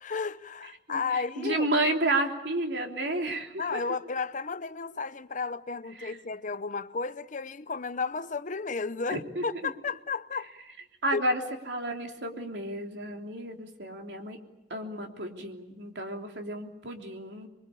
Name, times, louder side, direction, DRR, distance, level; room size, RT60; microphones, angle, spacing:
voice 1, 0.0-1.7 3.6-10.5 11.1-11.2, left 4 dB, 50° left, 0.9 m, -33 dB
voice 2, 0.9-3.8 6.0-6.2 9.1-9.7 11.0-14.4 14.7-17.5, right 1 dB, 85° right, 3.3 m, -31 dB
26.5 x 23.0 x 8.5 m
head